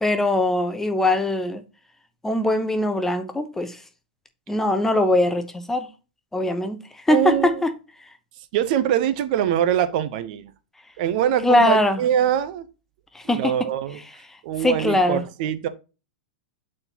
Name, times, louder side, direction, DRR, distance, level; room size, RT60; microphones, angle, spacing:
voice 1, 0.0-1.6 2.2-3.8 4.5-5.9 6.3-6.8 7.1-7.7 11.4-12.0 13.1-13.5 14.6-15.2, left 1 dB, 5° left, 0.7 m, -21 dB
voice 2, 7.1-7.6 8.5-10.5 11.0-12.7 13.2-14.0 14.4-15.7, right 10 dB, 55° right, 0.7 m, -23 dB
8.7 x 4.3 x 2.8 m
hypercardioid pair, 135°, 5 cm